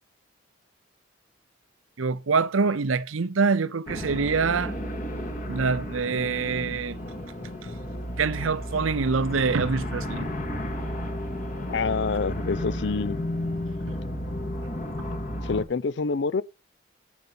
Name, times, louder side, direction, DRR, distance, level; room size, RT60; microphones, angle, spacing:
voice 1, 2.0-4.7 5.5-7.0 8.2-10.3 13.9-14.0 15.0-15.1, right 4 dB, 85° right, 0.7 m, -25 dB
sound 1, 3.9-15.6, left 1 dB, 40° left, 2.0 m, -33 dB
voice 2, 11.7-13.2 15.4-16.4, left 4 dB, 60° left, 0.4 m, -27 dB
12.0 x 5.4 x 5.4 m
head